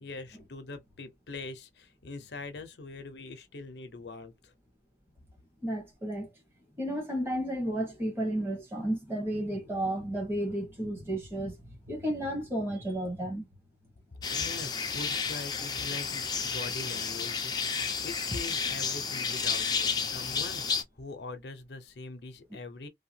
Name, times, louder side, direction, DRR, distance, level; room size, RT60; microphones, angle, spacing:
voice 1, 0.0-4.5 14.3-22.9, left 3 dB, 65° left, 0.6 m, -43 dB
voice 2, 5.6-6.3 6.8-11.6 11.9-13.5, right 1 dB, 15° right, 1.2 m, -32 dB
sound 1, 14.2-20.8, left 5 dB, 25° left, 0.5 m, -31 dB
2.8 x 2.3 x 2.7 m
head